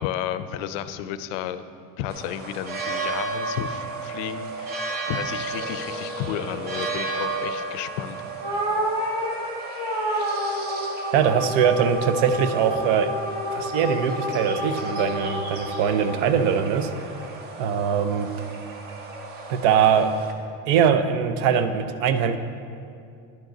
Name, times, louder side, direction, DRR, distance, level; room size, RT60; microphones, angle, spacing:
voice 1, 0.0-1.6 2.0-8.2, left 10 dB, 85° left, 12 dB, 0.5 m, -32 dB
sound 1, 2.1-20.3, right 3 dB, 25° right, 0.5 m, -34 dB
Telephone, 5.5-7.5, equal, 35° left, 0.6 m, -39 dB
sound 2, 8.4-17.0, equal, 10° right, 2.1 m, -29 dB
voice 2, 11.1-13.1 13.5-16.9 17.6-18.3 19.5-20.1 20.7-22.4, right 7 dB, 75° right, 10 dB, 0.6 m, -22 dB
10.5 x 5.2 x 3.9 m, 2.4 s
cardioid pair, 165°, 38 cm